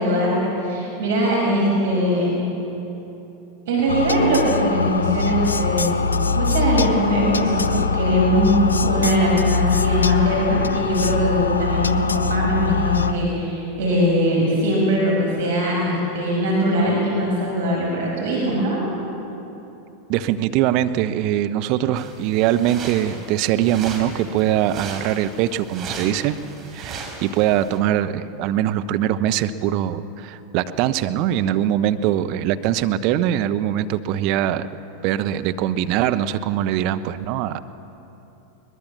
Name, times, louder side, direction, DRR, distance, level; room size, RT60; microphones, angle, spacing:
voice 1, 0.0-2.3 3.7-6.0 6.3-18.8, equal, 65° right, -3 dB, 6.0 m, -21 dB
sound 1, 3.9-13.1, left 4 dB, 80° left, 0.7 m, -22 dB
voice 2, 20.1-26.4 26.6-34.7 35.0-37.6, right 11 dB, 50° right, 11 dB, 0.9 m, -22 dB
sound 2, 22.0-27.8, right 4 dB, 30° right, 4.4 m, -37 dB
22.0 x 21.0 x 7.4 m, 3.0 s
figure-of-eight pair, 85°, 0 cm